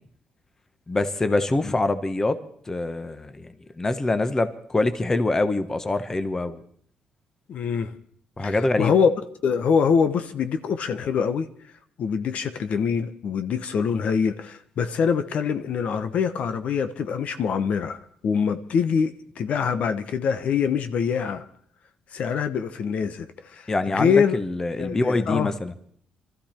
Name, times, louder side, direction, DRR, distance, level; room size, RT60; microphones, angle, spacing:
voice 1, 0.9-2.4 2.7-6.6 8.4-8.9 23.7-25.7, left 2 dB, 20° left, 11 dB, 1.1 m, -25 dB
voice 2, 7.5-7.9 8.4-9.1 9.4-11.5 12.0-21.4 22.1-24.4 24.8-25.5, left 6 dB, 60° left, 9 dB, 1.0 m, -24 dB
24.0 x 13.5 x 4.4 m, 0.63 s
cardioid pair, 110°, 3 cm